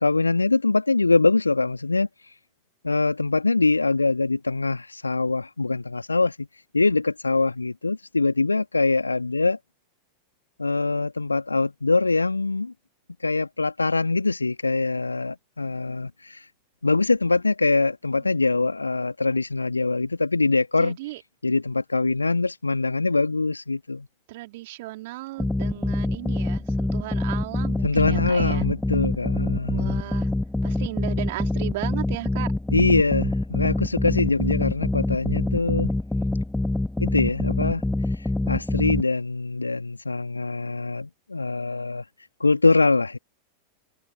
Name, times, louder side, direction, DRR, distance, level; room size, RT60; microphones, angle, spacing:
voice 1, 0.0-2.1 2.8-6.5 6.7-9.6 10.6-12.7 13.2-16.4 16.8-21.0 21.4-24.1 27.8-30.0 32.7-35.9 37.0-37.8 38.5-42.0 42.4-43.2, left 3 dB, 80° left, 2.6 m, -23 dB
voice 2, 20.8-21.2 24.3-28.7 29.7-30.3 30.6-32.5, right 19 dB, 50° right, 4.4 m, -36 dB
sound 1, 25.4-39.0, left 2 dB, 5° left, 1.8 m, -26 dB
figure-of-eight pair, 90°, 0 cm